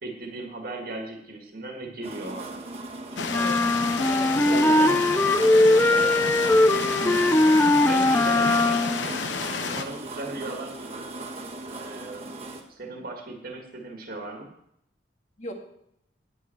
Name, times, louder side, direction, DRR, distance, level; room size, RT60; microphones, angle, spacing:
voice 1, 0.0-2.6 3.1-3.5 4.4-5.0 6.9-9.2 9.6-11.1 11.6-12.3 12.7-14.5, right 2 dB, 55° right, 2 dB, 1.8 m, -37 dB
sound 1, 2.0-12.6, right 2 dB, 35° right, 1.4 m, -38 dB
sound 2, 3.2-9.8, left 5 dB, 85° left, 0.9 m, -31 dB
sound 3, 3.3-9.0, left 2 dB, 10° left, 0.4 m, -20 dB
voice 2, 4.1-4.9 5.5-6.5 12.9-13.0 15.4-15.5, left 1 dB, 40° left, 2 dB, 1.7 m, -37 dB
9.9 x 9.0 x 4.5 m, 0.75 s
head